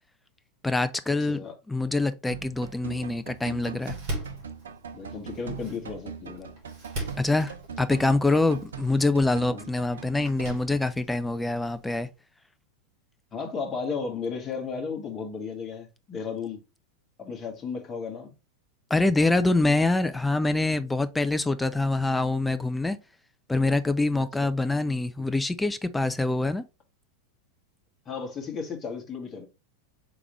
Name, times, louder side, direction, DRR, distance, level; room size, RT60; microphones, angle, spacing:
voice 1, 0.6-1.4 1.7-4.0 7.2-12.1 18.9-23.0 23.5-26.6, left 2 dB, 5° left, 0.4 m, -25 dB
sound 1, 2.3-10.6, right 6 dB, 65° right, 0.5 m, -41 dB
Door, 3.1-12.1, right 1 dB, 50° right, 2.0 m, -41 dB
voice 2, 4.9-6.5 9.5-9.7 13.3-16.6 17.2-18.3 24.4-24.5 28.0-29.5, left 5 dB, 25° left, 1.4 m, -34 dB
4.8 x 3.5 x 3.0 m
figure-of-eight pair, 90°, 0 cm